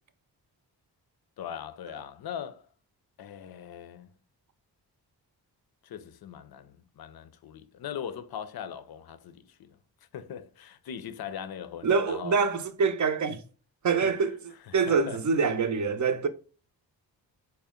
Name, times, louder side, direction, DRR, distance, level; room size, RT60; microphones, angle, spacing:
voice 1, 1.4-2.7 3.2-4.1 5.8-9.8 10.1-12.4 14.0-14.2 14.7-15.2, left 8 dB, 55° left, 0.5 m, -40 dB
voice 2, 11.8-13.4 13.8-14.4 14.7-16.3, right 5 dB, 45° right, 0.6 m, -25 dB
4.3 x 2.1 x 3.5 m
cardioid pair, 50°, 44 cm